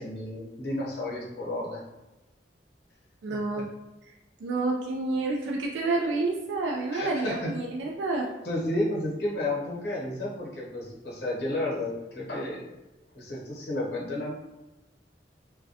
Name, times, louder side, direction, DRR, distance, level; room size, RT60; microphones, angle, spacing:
voice 1, 0.0-1.8 6.9-7.5 8.4-12.7 13.1-14.3, left 1 dB, 60° left, -4 dB, 0.8 m, -32 dB
voice 2, 3.2-3.7 4.0-4.1 4.4-8.3, right 3 dB, 85° right, -1 dB, 0.3 m, -29 dB
2.2 x 2.2 x 2.6 m, 1.0 s
head